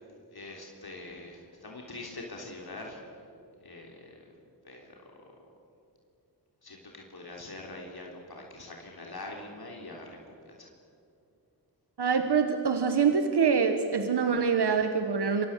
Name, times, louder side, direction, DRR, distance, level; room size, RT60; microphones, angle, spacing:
voice 1, 0.3-3.2 3.6-4.3 4.6-5.0 6.6-10.7, left 2 dB, 70° left, 0 dB, 3.5 m, -44 dB
voice 2, 12.0-15.5, right 6 dB, 90° right, 7 dB, 1.4 m, -25 dB
28.0 x 24.0 x 7.3 m, 2.6 s
wide cardioid pair, 60°, 39 cm